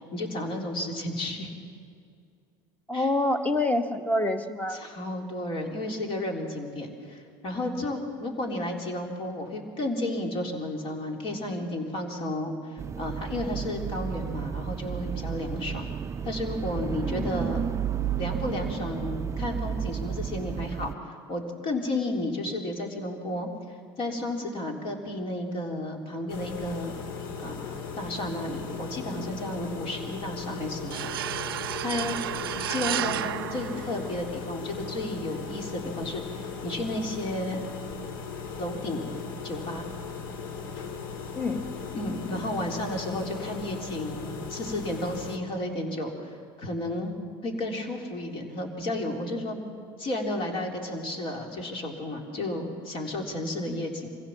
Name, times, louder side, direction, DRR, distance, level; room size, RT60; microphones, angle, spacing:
voice 1, 0.1-1.5 2.9-3.1 4.7-15.9 16.3-17.6 18.2-23.5 24.0-27.0 27.4-31.4 31.8-32.2 32.7-37.6 38.6-39.1 39.4-39.9 41.9-47.1 47.4-49.6 50.0-54.1, left 1 dB, 50° left, 2 dB, 3.7 m, -32 dB
voice 2, 2.9-4.8 17.0-17.3 41.3-41.7 53.7-53.8, left 1 dB, 15° left, 8 dB, 1.5 m, -27 dB
sound 1, 12.8-21.0, right 8 dB, 25° right, 0.4 m, -32 dB
sound 2, 26.3-45.4, left 6 dB, 75° left, 2.0 m, -38 dB
sound 3, 30.9-34.5, right 13 dB, 90° right, 0.4 m, -32 dB
25.0 x 16.0 x 7.5 m, 2.2 s
hypercardioid pair, 85°, 12 cm